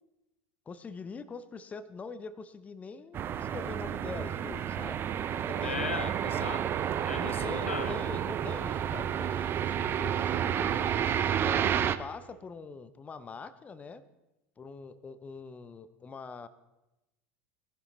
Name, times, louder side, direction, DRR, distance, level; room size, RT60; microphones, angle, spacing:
voice 1, 0.7-5.1 5.3-6.0 7.2-10.9 11.4-14.0 14.6-16.5, left 4 dB, 20° left, 14 dB, 0.7 m, -43 dB
sound 1, 3.1-12.0, right 9 dB, 35° right, 0.6 m, -30 dB
voice 2, 5.6-6.7 7.0-8.0, left 5 dB, 80° left, 13 dB, 0.6 m, -37 dB
18.0 x 10.5 x 3.1 m, 0.97 s
figure-of-eight pair, 75°, 7 cm